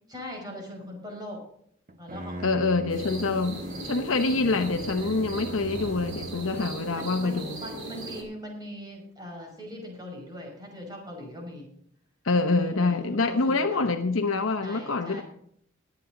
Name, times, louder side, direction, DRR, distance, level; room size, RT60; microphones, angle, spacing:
voice 1, 0.1-1.4 1.9-2.4 6.9-11.7 12.6-13.9 14.6-15.2, left 1 dB, 20° right, 5.7 m, -41 dB
Bowed string instrument, 1.9-7.0, right 1 dB, 45° right, 1.0 m, -41 dB
voice 2, 2.4-7.6 12.2-15.2, left 3 dB, 80° left, 0.9 m, -26 dB
sound 1, 2.9-8.2, right 2 dB, 75° right, 5.0 m, -38 dB
21.0 x 9.5 x 3.9 m
head